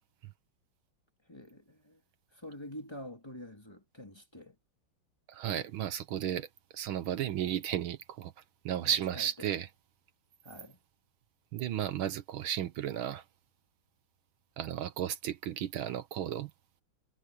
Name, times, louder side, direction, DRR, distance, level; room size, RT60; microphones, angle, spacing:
voice 1, 1.3-2.0 2.3-4.6 8.8-9.5 10.4-10.8, left 1 dB, 10° left, 2.4 m, -47 dB
voice 2, 5.3-6.5 6.7-8.3 8.7-9.7 11.5-13.2 14.6-16.5, right 10 dB, 75° right, 1.7 m, -34 dB
omnidirectional pair, 2.3 m